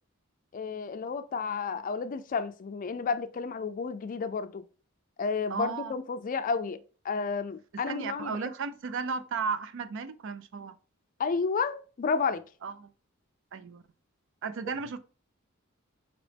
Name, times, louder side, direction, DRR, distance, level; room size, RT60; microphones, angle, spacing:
voice 1, 0.5-4.6 5.2-8.5 11.2-12.4, left 5 dB, 40° left, 0.4 m, -31 dB
voice 2, 5.5-5.9 7.8-10.7 12.6-12.9 13.5-13.8 14.4-15.0, right 5 dB, 65° right, 0.4 m, -34 dB
5.1 x 2.9 x 3.3 m
head